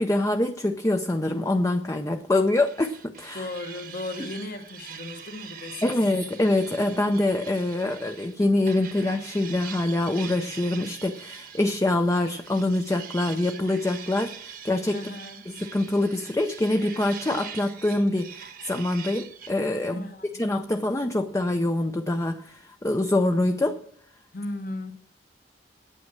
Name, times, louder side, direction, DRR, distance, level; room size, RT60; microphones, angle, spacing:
voice 1, 0.0-3.5 5.8-15.0 15.6-20.1 20.4-23.8, left 2 dB, 15° left, 0.5 m, -25 dB
sound 1, 2.6-8.3 8.7-19.5, right 8 dB, 50° right, 1.1 m, -43 dB
voice 2, 3.3-6.0 14.9-15.5 19.9-20.5 24.3-24.9, left 2 dB, 50° left, 1.2 m, -36 dB
9.2 x 8.5 x 7.4 m
head